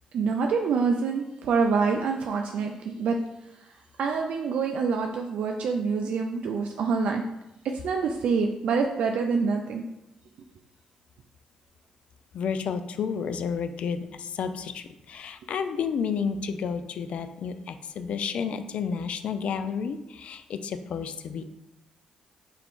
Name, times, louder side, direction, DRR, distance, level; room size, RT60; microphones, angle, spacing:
voice 1, 0.1-3.2 4.0-7.2 7.6-9.8, right 5 dB, 70° right, 2 dB, 0.3 m, -26 dB
voice 2, 12.3-21.4, left 6 dB, 65° left, 10 dB, 0.3 m, -31 dB
4.5 x 2.4 x 3.5 m, 0.90 s
cardioid pair, 75°, 2 cm